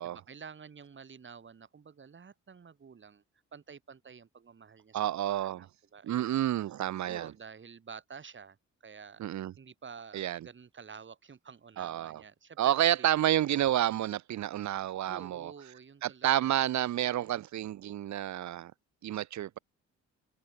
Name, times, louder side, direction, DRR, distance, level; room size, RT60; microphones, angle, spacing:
voice 1, 0.0-3.2 3.5-5.7 5.9-6.3 7.1-9.2 9.6-13.1 15.1-16.7, right 6 dB, 40° right, 5.2 m, -50 dB
voice 2, 4.9-5.7 6.0-7.3 9.2-9.5 10.1-10.4 11.8-12.2 12.6-15.5 16.0-18.7 19.0-19.6, right 12 dB, 65° right, 1.2 m, -30 dB
cardioid pair, 90°, 30 cm